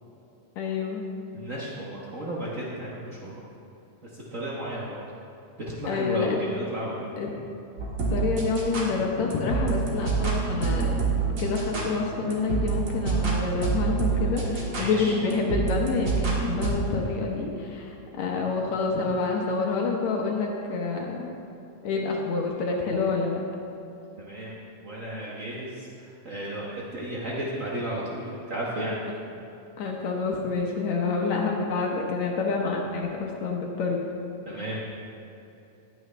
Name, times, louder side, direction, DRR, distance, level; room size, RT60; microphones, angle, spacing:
voice 1, 0.6-1.0 5.9-6.4 7.2-7.3 8.1-11.0 11.4-21.4 21.8-23.4 29.8-34.0 34.5-34.6, left 4 dB, 75° left, 0 dB, 2.2 m, -28 dB
voice 2, 1.3-3.4 4.1-5.0 5.7-7.1 14.5-15.1 24.2-24.5 24.8-29.0 34.5-34.8, right 1 dB, 70° right, -5 dB, 0.7 m, -33 dB
sound 1, 7.8-16.7, right 4 dB, 40° right, 1.4 m, -27 dB
15.5 x 9.3 x 3.3 m, 2.9 s
omnidirectional pair, 3.3 m